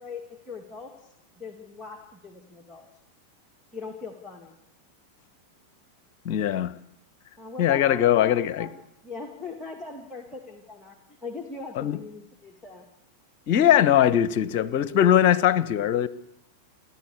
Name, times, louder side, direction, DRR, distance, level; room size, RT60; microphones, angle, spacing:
voice 1, 0.0-2.9 3.7-4.5 7.4-8.7 9.0-12.9, left 4 dB, 10° left, 1 dB, 2.4 m, -40 dB
voice 2, 6.2-6.7 7.6-8.7 11.8-12.0 13.5-16.1, left 10 dB, 45° left, 19 dB, 1.0 m, -21 dB
30.0 x 11.5 x 8.5 m, 0.80 s
figure-of-eight pair, 90°, 0 cm